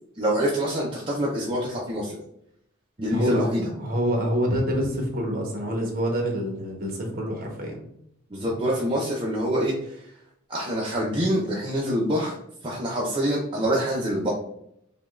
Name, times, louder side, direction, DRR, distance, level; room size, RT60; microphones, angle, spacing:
voice 1, 0.2-2.2 3.0-3.7 8.3-10.1 10.5-12.4 12.6-14.3, equal, 25° right, -4 dB, 0.5 m, -26 dB
voice 2, 3.1-7.8, equal, 45° right, 1 dB, 0.9 m, -26 dB
5.0 x 2.2 x 2.3 m, 0.74 s
head